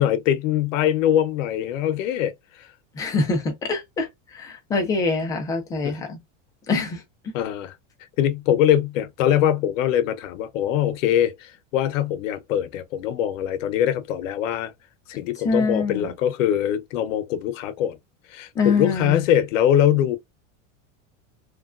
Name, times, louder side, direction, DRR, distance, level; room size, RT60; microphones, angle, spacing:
voice 1, 0.0-2.3 5.8-6.0 7.3-7.7 8.2-14.7 15.2-18.0 18.3-20.2, left 10 dB, 85° left, 0.7 m, -22 dB
voice 2, 3.0-6.2 6.7-7.0 15.4-16.1 18.6-19.2, left 4 dB, 10° left, 0.3 m, -24 dB
3.2 x 2.2 x 2.4 m
supercardioid pair, 160°, 38 cm